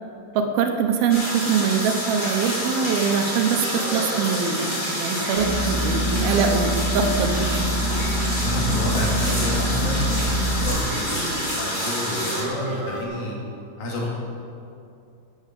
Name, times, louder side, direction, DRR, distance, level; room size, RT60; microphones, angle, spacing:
voice 1, 0.4-7.5, right 6 dB, 75° right, 4 dB, 2.7 m, -23 dB
sound 1, 1.1-12.4, equal, 15° left, 2.8 m, -28 dB
sound 2, 2.5-2.7 3.5-4.4 5.3-5.7 6.0-6.1 6.4-6.7 7.0-7.1 7.5-7.6 7.9-8.1 8.7-8.9 9.4-9.6 10.5-10.7 11.3-11.4 11.8-13.0, right 2 dB, 50° right, 2.8 m, -35 dB
sound 3, 5.4-10.7, equal, 35° left, 1.0 m, -25 dB
voice 2, 8.3-13.4 13.8-14.1, left 1 dB, 65° left, -2 dB, 4.0 m, -29 dB
13.0 x 9.5 x 7.5 m, 2.5 s
omnidirectional pair, 4.6 m